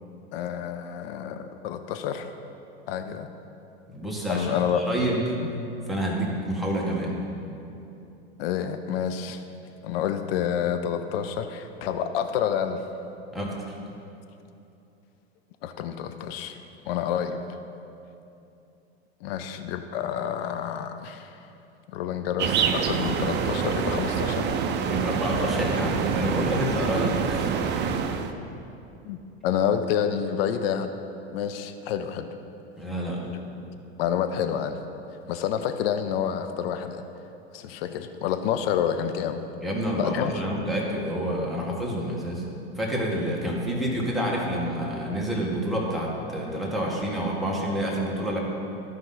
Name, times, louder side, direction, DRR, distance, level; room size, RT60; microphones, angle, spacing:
voice 1, 0.3-2.3 2.9-3.3 4.3-4.8 5.4-5.5 8.4-9.4 9.8-12.8 15.6-16.6 16.9-17.4 19.2-21.4 21.9-24.6 29.0-30.9 31.3-32.3 34.0-34.8 35.3-37.0 37.5-39.4 40.0-40.5, left 8 dB, 65° left, 9 dB, 0.6 m, -28 dB
voice 2, 3.9-5.2 5.9-7.2 13.3-13.8 24.9-27.5 32.8-33.3 39.6-42.4 42.8-48.4, equal, ahead, -4 dB, 1.7 m, -28 dB
sound 1, 22.4-28.3, right 6 dB, 35° right, 0.6 m, -26 dB
13.0 x 5.4 x 3.9 m, 2.8 s
hypercardioid pair, 105°, 33 cm